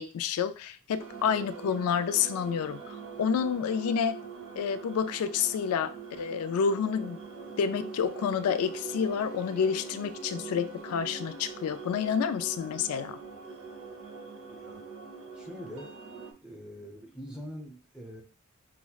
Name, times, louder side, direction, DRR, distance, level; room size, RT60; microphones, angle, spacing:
voice 1, 0.0-4.2 4.6-7.2 7.6-13.2, left 7 dB, 85° left, 15 dB, 0.3 m, -29 dB
sound 1, 1.0-16.3, right 5 dB, 65° right, 0.7 m, -43 dB
voice 2, 14.5-14.8 15.3-15.9 16.4-18.2, equal, 5° right, 0 dB, 0.6 m, -43 dB
5.8 x 2.0 x 2.3 m, 0.37 s
head